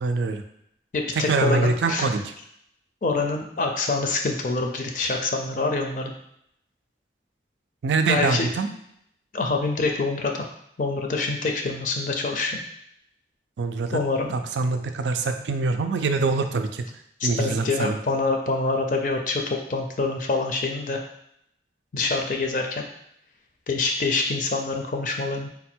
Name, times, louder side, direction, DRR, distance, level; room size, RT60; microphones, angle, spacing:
voice 1, 0.0-0.4 1.3-2.3 7.8-8.7 13.6-14.0 14.3-16.8 17.2-18.0, right 4 dB, 85° right, 7 dB, 0.4 m, -24 dB
voice 2, 0.9-2.1 3.0-6.1 8.1-8.5 9.3-10.5 10.8-12.6 13.9-14.4 17.2-21.0 21.9-22.8 23.7-25.5, left 3 dB, 45° left, 3 dB, 0.4 m, -26 dB
4.0 x 2.2 x 4.3 m, 0.74 s
head